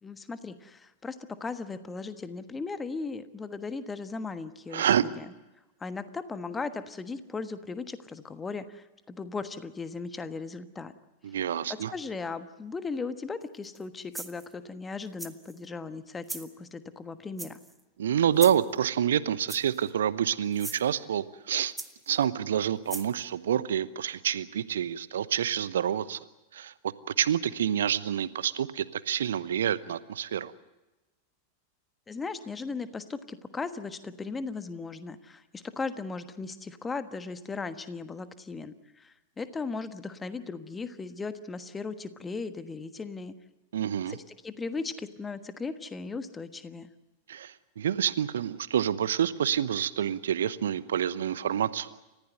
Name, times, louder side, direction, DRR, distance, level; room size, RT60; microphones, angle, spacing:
voice 1, 0.0-5.3 5.8-10.9 11.7-17.6 32.1-43.3 44.1-46.9, left 4 dB, 15° left, 11 dB, 1.3 m, -37 dB
voice 2, 4.7-5.0 11.2-11.9 18.0-21.7 22.1-26.2 26.5-26.7 27.2-30.5 43.7-44.2 47.3-51.9, right 9 dB, 65° right, 17 dB, 0.9 m, -28 dB
sound 1, 13.6-13.8 14.1-14.5 15.2-15.6 16.2-16.5 17.4-17.8 18.4-18.7 19.5-19.9 20.5-20.8 21.8-22.2 22.9-23.1, right 2 dB, 5° right, 1.3 m, -39 dB
29.5 x 15.5 x 7.9 m, 1.1 s
figure-of-eight pair, 90°, 0 cm